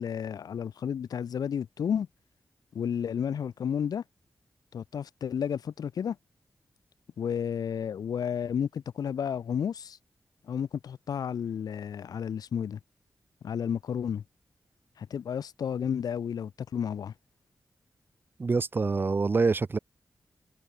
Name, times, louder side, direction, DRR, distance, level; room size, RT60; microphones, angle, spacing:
voice 1, 0.0-2.1 2.7-4.0 4.7-6.2 7.2-10.0 10.5-12.8 13.4-14.2 15.0-17.1, left 8 dB, 85° left, 0.5 m, -32 dB
voice 2, 18.4-19.8, right 4 dB, 35° right, 0.7 m, -25 dB
wide cardioid pair, 145°, 6 cm